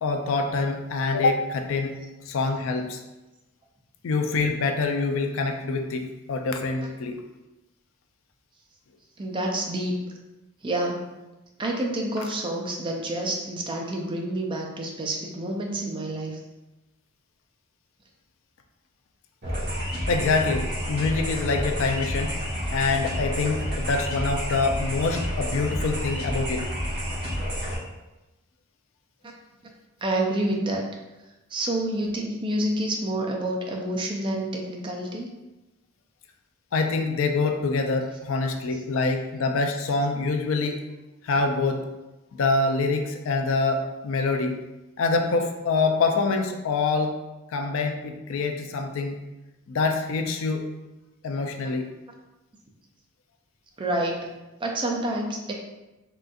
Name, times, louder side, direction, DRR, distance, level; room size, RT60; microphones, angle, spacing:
voice 1, 0.0-1.9 2.3-3.0 4.0-6.0 6.3-7.2 20.1-22.3 22.7-26.6 36.7-40.8 41.2-41.8 42.3-44.5 45.0-47.1 47.5-49.2 49.7-50.6 51.2-51.9, left 3 dB, 65° left, 4 dB, 0.4 m, -25 dB
voice 2, 9.2-10.0 10.6-11.1 11.6-16.4 30.0-30.9 31.5-35.3 38.7-38.8 53.8-54.3 54.6-55.5, right 1 dB, 25° right, 0 dB, 0.4 m, -28 dB
sound 1, 19.4-27.8, equal, 50° right, 1.3 m, -29 dB
3.7 x 2.4 x 2.5 m, 1.0 s
head